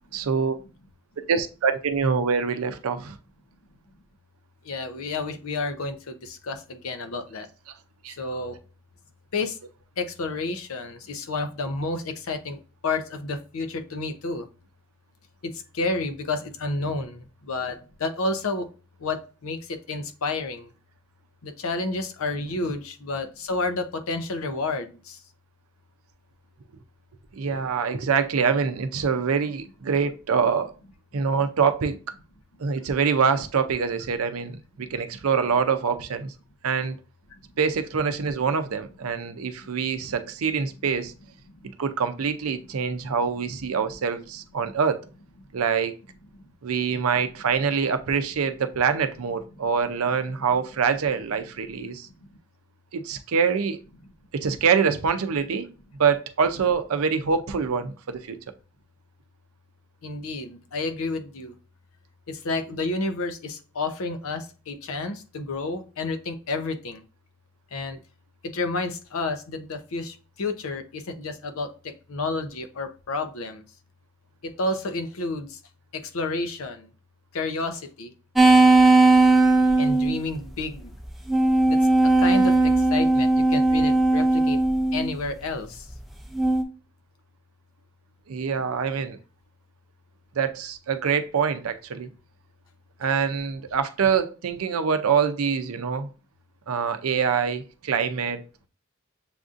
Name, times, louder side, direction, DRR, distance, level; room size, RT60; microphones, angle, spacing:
voice 1, 0.1-0.5 1.2-3.1 8.0-8.1 27.3-30.7 31.1-32.0 32.6-36.3 36.6-37.0 37.6-41.1 41.8-45.0 45.5-45.9 46.6-52.1 52.9-53.8 54.3-55.7 56.0-58.4 88.3-89.2 90.4-92.1 93.0-96.1 96.7-98.4, right 6 dB, 90° right, 0.5 m, -25 dB
voice 2, 4.6-7.5 8.2-8.6 9.3-9.6 10.0-14.5 15.4-18.7 19.0-20.7 21.4-25.2 60.0-61.5 62.3-67.0 67.7-68.0 68.4-71.7 72.1-73.6 74.4-75.6 75.9-76.9 77.3-78.1 79.8-80.9 81.7-81.8 82.2-84.6 84.9-85.9, left 3 dB, 85° left, 0.6 m, -30 dB
sound 1, 78.3-80.2 81.0-85.1 86.3-86.6, right 2 dB, ahead, 0.4 m, -18 dB
6.9 x 2.5 x 2.5 m
head